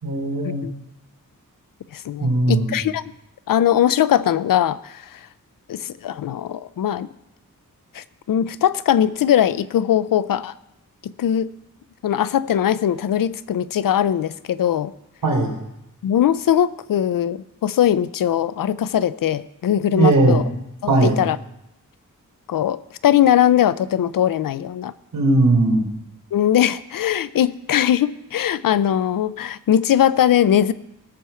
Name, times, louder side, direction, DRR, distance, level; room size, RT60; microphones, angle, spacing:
voice 1, 0.0-0.7 2.2-2.8 15.2-15.6 19.9-20.4 20.9-21.2 25.1-25.8, right 2 dB, 85° right, -1 dB, 3.5 m, -18 dB
voice 2, 1.9-3.0 3.5-5.2 5.7-7.1 7.9-10.5 11.0-11.5 12.0-14.9 16.0-20.4 20.8-21.4 22.5-24.9 26.3-30.7, left 10 dB, 85° left, 16 dB, 0.5 m, -20 dB
18.5 x 6.9 x 4.4 m, 0.85 s
wide cardioid pair, 110°, 33 cm